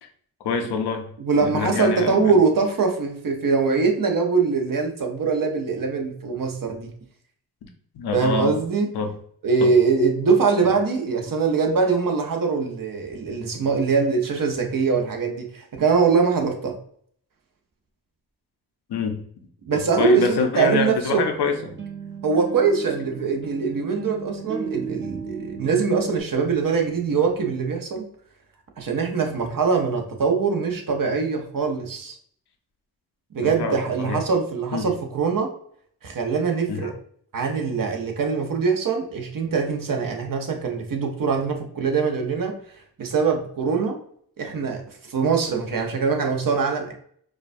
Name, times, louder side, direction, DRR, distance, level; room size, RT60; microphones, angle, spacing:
voice 1, 0.4-1.1 1.4-2.3 7.9-8.6 8.9-9.1 9.6-9.7 18.9-19.2 20.0-21.7 33.4-34.2 34.7-34.9 36.7-36.9, left 4 dB, 90° left, 4 dB, 0.7 m, -26 dB
voice 2, 1.2-6.9 8.1-8.9 9.4-16.8 19.7-21.2 22.2-28.0 28.8-32.2 33.3-35.5 36.0-36.9 37.3-42.6 43.0-44.0 44.4-46.9, right 5 dB, 60° right, 2 dB, 0.9 m, -23 dB
sound 1, 21.0-26.2, right 5 dB, 30° right, 0.8 m, -35 dB
4.8 x 2.3 x 2.6 m, 0.63 s
cardioid pair, 55°, 38 cm